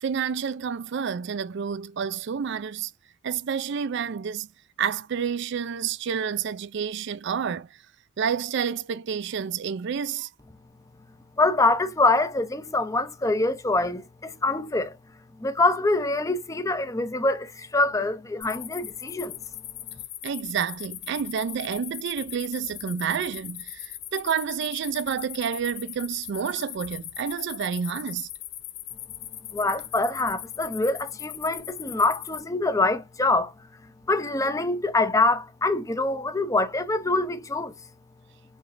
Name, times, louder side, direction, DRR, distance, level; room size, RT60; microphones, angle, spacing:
voice 1, 0.0-2.9 3.2-4.5 4.8-7.8 8.2-10.3 20.2-28.3, right 7 dB, 60° right, 0.4 m, -29 dB
voice 2, 11.4-15.0 15.4-19.4 29.5-33.5 34.1-37.7, left 2 dB, 15° left, 0.5 m, -25 dB
sound 1, 18.4-32.4, left 13 dB, 85° left, 0.8 m, -39 dB
4.8 x 3.2 x 2.5 m
head